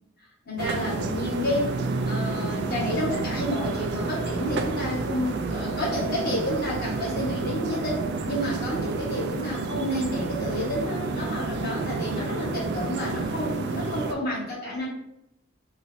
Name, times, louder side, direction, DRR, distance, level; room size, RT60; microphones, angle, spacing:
voice 1, 0.5-1.7 2.0-14.9, left 1 dB, 50° left, -6 dB, 1.4 m, -30 dB
sound 1, 0.6-14.1, right 3 dB, 55° right, 0.3 m, -30 dB
3.9 x 2.0 x 2.6 m, 0.82 s
head